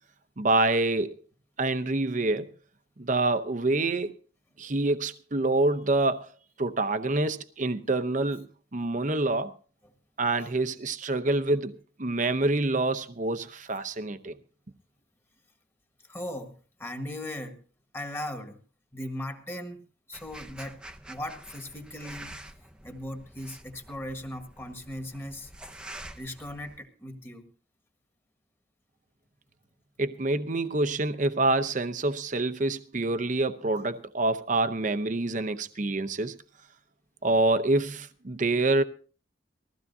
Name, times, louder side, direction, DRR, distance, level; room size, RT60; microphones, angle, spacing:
voice 1, 0.4-1.2 1.6-2.5 3.0-4.1 4.6-6.3 6.6-9.5 10.2-14.4 30.0-36.4 37.2-38.8, right 2 dB, 40° right, 0.8 m, -26 dB
voice 2, 16.1-16.5 16.8-17.6 17.9-18.6 18.9-19.8 20.1-20.8 21.1-22.4 22.8-25.5 26.2-27.4 33.7-33.9, left 1 dB, 15° left, 1.7 m, -38 dB
sound 1, 20.1-26.8, right 1 dB, 5° right, 0.7 m, -47 dB
21.0 x 15.0 x 2.7 m
head